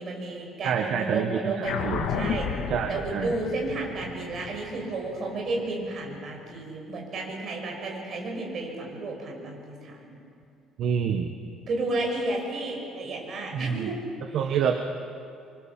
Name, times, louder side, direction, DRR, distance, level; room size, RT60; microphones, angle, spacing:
voice 1, 0.0-2.5 2.9-10.2 11.7-14.0 14.3-14.4, right 2 dB, 35° right, 0 dB, 6.2 m, -32 dB
voice 2, 0.6-2.1 2.7-3.3 10.8-11.3 13.5-13.9 14.3-14.8, right 7 dB, 50° right, 5 dB, 1.4 m, -27 dB
sound 1, 1.6-6.4, left 6 dB, 65° left, 2.6 m, -33 dB
27.5 x 24.0 x 7.4 m, 2.5 s
cardioid pair, 170°, 0 cm